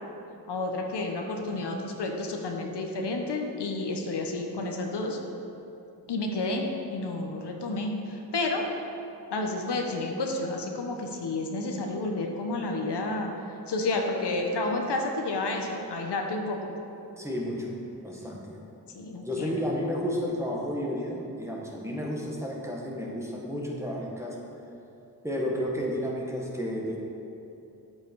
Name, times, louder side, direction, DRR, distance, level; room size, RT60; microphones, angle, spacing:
voice 1, 0.5-5.2 6.1-8.6 9.3-16.7 18.9-19.6, left 2 dB, 85° left, 2 dB, 1.0 m, -30 dB
voice 2, 17.2-17.7 18.0-18.6 19.2-24.4 25.2-27.0, equal, 5° right, -2 dB, 1.7 m, -32 dB
8.9 x 7.6 x 4.6 m, 2.8 s
cardioid pair, 65°, 40 cm